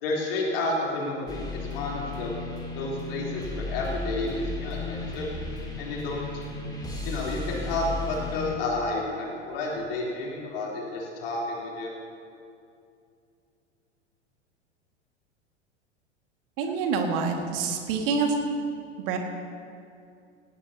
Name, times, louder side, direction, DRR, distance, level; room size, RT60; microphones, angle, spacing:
voice 1, 0.0-2.3 2.8-5.3 5.8-6.4 7.0-11.9, left 2 dB, 50° left, -3 dB, 3.5 m, -31 dB
sound 1, 1.3-8.6, left 2 dB, 10° left, 2.7 m, -35 dB
voice 2, 16.6-18.3 19.1-19.2, right 5 dB, 50° right, 3 dB, 2.0 m, -26 dB
17.5 x 17.0 x 2.8 m, 2.4 s
figure-of-eight pair, 85°, 35 cm